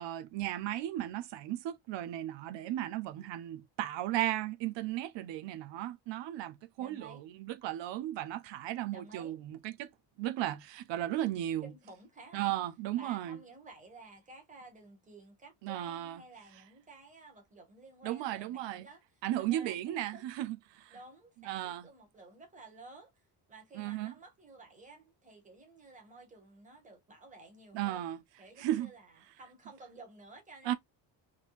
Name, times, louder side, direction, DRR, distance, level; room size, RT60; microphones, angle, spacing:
voice 1, 0.0-9.9 10.2-11.7 12.3-13.4 15.6-16.2 18.0-18.9 19.2-21.0 21.5-21.9 23.7-24.1 27.7-28.2 28.6-28.9 30.6-30.7, right 13 dB, 85° right, 0.7 m, -35 dB
voice 2, 6.8-7.3 8.9-9.4 11.6-12.5 13.0-19.0 19.5-20.2 20.9-23.1 23.5-28.1 28.4-30.7, right 3 dB, 15° right, 1.4 m, -53 dB
3.8 x 3.3 x 2.4 m
cardioid pair, 175°, 43 cm